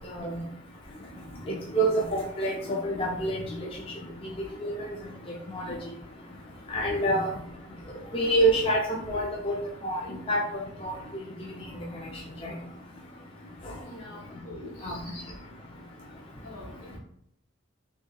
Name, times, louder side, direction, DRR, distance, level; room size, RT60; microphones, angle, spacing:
voice 1, 1.5-3.5 4.6-4.9 5.5-5.8 6.7-7.2 8.1-9.5 9.8-10.0 10.3-10.4 10.8-10.9 11.7-11.8 12.4-12.5 14.8-15.0, right 1 dB, 25° left, -3 dB, 0.4 m, -26 dB
voice 2, 13.8-15.1 16.3-17.0, left 1 dB, 75° left, -3 dB, 1.3 m, -45 dB
3.0 x 2.7 x 3.8 m, 0.71 s
head